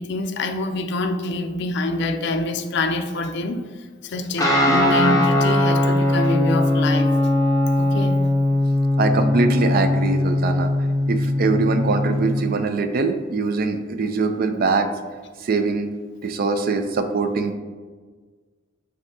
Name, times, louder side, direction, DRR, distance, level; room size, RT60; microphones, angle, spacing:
voice 1, 0.0-3.7 4.0-7.1 7.8-8.3, left 2 dB, 65° left, 7 dB, 0.4 m, -25 dB
Guitar, 4.4-12.4, left 1 dB, 20° left, 0.7 m, -20 dB
voice 2, 9.0-10.7 11.1-14.9 15.4-15.9 16.2-17.5, right 3 dB, 50° right, 8 dB, 0.4 m, -22 dB
7.2 x 2.7 x 2.7 m, 1.5 s
head